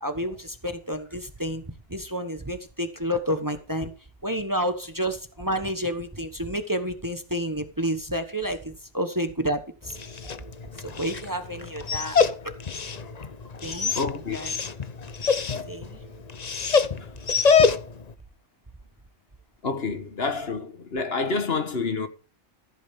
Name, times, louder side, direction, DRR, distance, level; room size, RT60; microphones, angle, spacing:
voice 1, 0.0-1.6 1.9-3.9 4.2-10.0 10.8-12.2 12.4-12.5 13.6-13.9 14.3-14.5 15.7-16.0, equal, 15° right, 1.2 m, -30 dB
Dog, 9.8-18.1, left 5 dB, 40° left, 0.9 m, -26 dB
voice 2, 14.0-14.4 15.5-15.7 19.6-22.1, left 4 dB, 60° left, 1.6 m, -28 dB
15.0 x 8.6 x 3.7 m
omnidirectional pair, 1.2 m